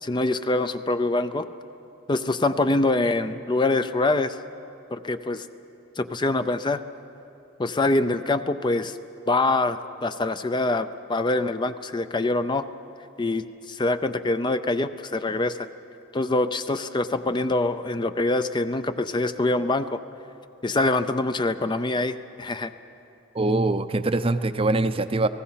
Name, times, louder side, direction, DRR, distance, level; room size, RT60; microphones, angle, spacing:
voice 1, 0.0-1.5 2.1-4.4 4.9-5.5 6.0-6.8 7.6-9.0 9.3-12.7 13.2-15.7 16.1-20.0 20.6-22.7, left 2 dB, 25° left, 10 dB, 0.5 m, -24 dB
voice 2, 23.3-25.3, right 2 dB, 30° right, 11 dB, 0.6 m, -23 dB
30.0 x 18.5 x 5.7 m, 2.7 s
head